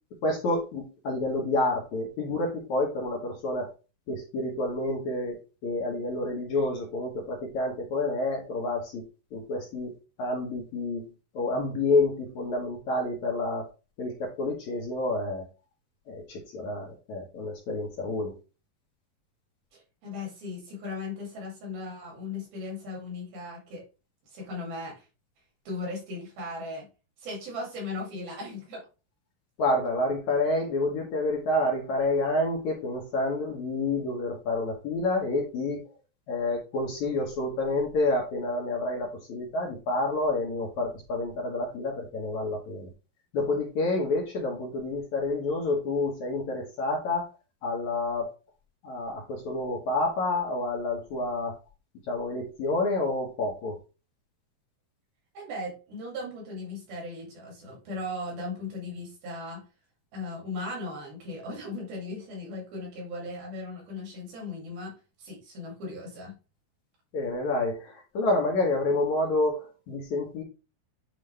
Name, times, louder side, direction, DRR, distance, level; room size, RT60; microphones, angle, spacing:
voice 1, 0.2-3.7 4.1-5.4 5.6-9.0 9.3-9.9 10.2-11.1 11.3-13.7 14.0-15.5 16.1-18.3 29.6-35.8 36.3-42.9 43.3-47.3 47.6-48.3 48.8-51.6 52.1-53.8 67.1-70.4, left 2 dB, 65° left, 0 dB, 2.1 m, -28 dB
voice 2, 19.7-23.8 24.3-25.0 25.7-26.9 27.2-28.8 55.3-59.6 60.1-64.9 65.2-66.3, left 2 dB, 75° right, -2 dB, 4.5 m, -37 dB
9.3 x 3.1 x 3.3 m, 0.32 s
omnidirectional pair, 4.3 m